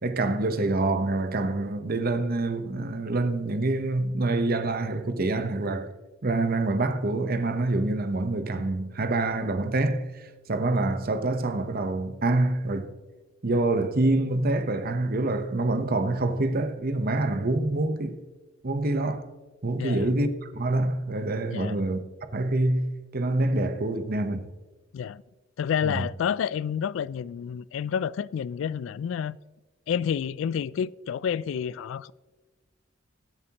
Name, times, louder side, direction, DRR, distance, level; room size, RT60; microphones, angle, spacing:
voice 1, 0.0-5.9 6.2-10.0 10.5-12.9 13.4-18.2 18.6-19.2 19.6-22.0 22.3-24.5 25.8-26.1, right 2 dB, 50° right, 0.9 m, -26 dB
voice 2, 19.8-20.1 21.5-21.8 24.9-25.2 25.6-29.4 29.9-32.1, left 8 dB, 70° left, 0.3 m, -29 dB
20.0 x 7.6 x 2.9 m
head